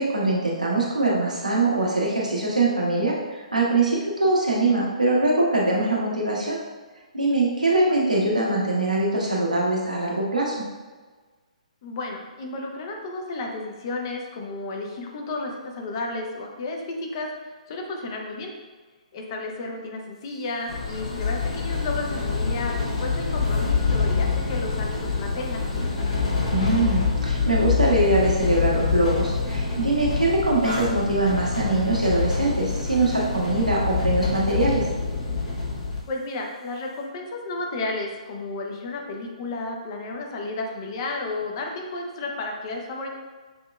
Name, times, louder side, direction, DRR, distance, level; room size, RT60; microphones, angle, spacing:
voice 1, 0.0-6.6 7.1-10.6 26.5-34.8, right 2 dB, 85° right, -4 dB, 1.2 m, -23 dB
voice 2, 11.8-18.5 19.1-25.6 36.1-43.1, left 2 dB, 35° left, 1 dB, 0.7 m, -32 dB
sound 1, 20.7-36.0, left 4 dB, 55° left, 1.1 m, -26 dB
6.3 x 2.9 x 2.3 m, 1.3 s
figure-of-eight pair, 125°, 4 cm